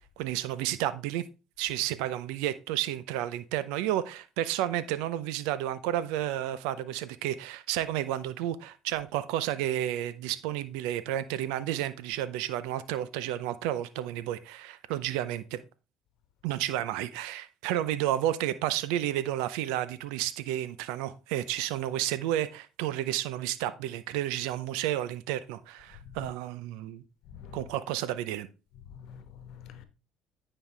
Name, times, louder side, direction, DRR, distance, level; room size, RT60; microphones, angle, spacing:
voice 1, 0.2-1.2 1.6-15.6 16.4-27.0 27.5-28.5, right 12 dB, 85° right, 0.6 m, -31 dB
voice 2, 27.3-27.7 28.9-29.8, left 7 dB, 65° left, 1.1 m, -46 dB
9.4 x 5.4 x 3.3 m
supercardioid pair, 90°, 0 cm